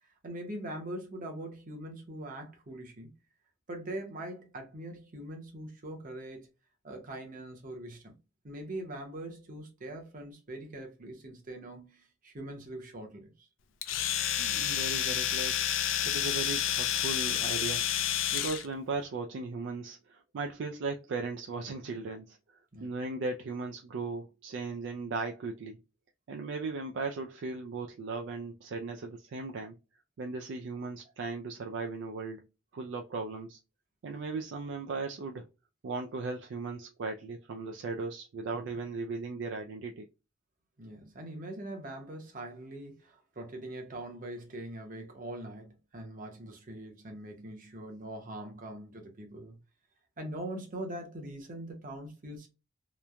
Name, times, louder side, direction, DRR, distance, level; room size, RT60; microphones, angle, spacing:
voice 1, 0.0-3.1 3.7-6.5 6.8-8.1 8.4-13.5 22.7-23.0 38.6-38.8 40.8-49.6 50.2-52.5, right 1 dB, 45° right, 0.8 m, -42 dB
Domestic sounds home sounds, 13.8-18.7, left 10 dB, 80° left, 0.4 m, -30 dB
voice 2, 14.4-15.6 16.0-25.8 26.3-29.8 30.2-32.4 32.7-33.6 34.0-35.5 35.8-40.1, right 3 dB, 65° right, 0.3 m, -37 dB
3.0 x 2.1 x 2.3 m
head